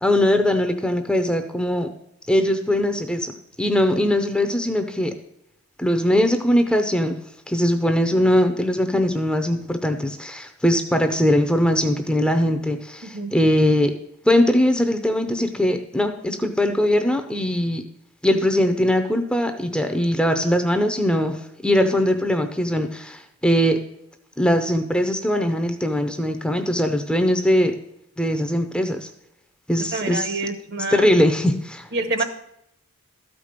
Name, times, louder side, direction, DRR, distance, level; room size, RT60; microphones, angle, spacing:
voice 1, 0.0-1.9 2.3-3.3 3.6-5.1 5.8-7.2 7.5-13.9 14.2-17.8 18.2-23.8 24.4-27.8 28.2-29.1 29.7-30.4 30.9-31.9 32.2-32.3, left 1 dB, 5° left, 7 dB, 0.6 m, -21 dB
voice 2, 29.9-31.1 31.9-32.2, right 3 dB, 45° right, 10 dB, 1.0 m, -26 dB
13.0 x 5.2 x 6.6 m, 0.79 s
head